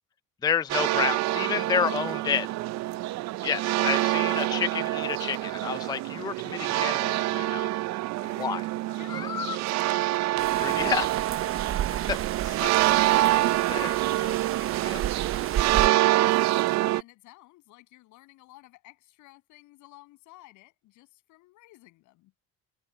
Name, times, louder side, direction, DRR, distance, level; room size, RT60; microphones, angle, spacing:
voice 1, 0.4-2.5 3.4-7.7 8.4-8.6 9.1-9.6 10.6-11.1 12.1-12.7 13.2-13.4 13.7-14.4 14.8-15.0, left 7 dB, 15° left, 0.4 m, -30 dB
sound 1, 0.7-17.0, right 17 dB, 65° right, 0.5 m, -26 dB
voice 2, 8.9-10.2 10.5-11.1 13.7-14.1 14.6-15.1 16.9-22.3, left 19 dB, 85° left, 7.7 m, -53 dB
sound 2, 10.4-15.9, right 11 dB, 45° right, 0.9 m, -33 dB
cardioid pair, 130°, 29 cm